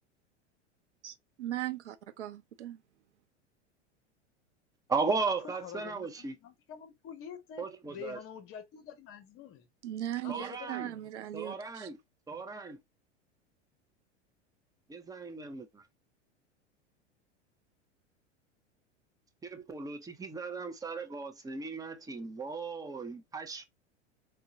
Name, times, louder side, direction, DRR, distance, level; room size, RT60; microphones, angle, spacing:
voice 1, 1.0-2.8 9.8-11.9, right 13 dB, 75° right, 0.7 m, -38 dB
voice 2, 4.9-6.4 7.6-8.2 10.3-10.9 11.3-12.0 12.3-12.8 14.9-15.8 19.4-23.6, right 4 dB, 10° right, 0.6 m, -36 dB
voice 3, 5.4-9.7 10.2-11.1 12.3-12.4, left 8 dB, 35° left, 0.9 m, -47 dB
4.5 x 2.2 x 2.7 m
figure-of-eight pair, 85°, 35 cm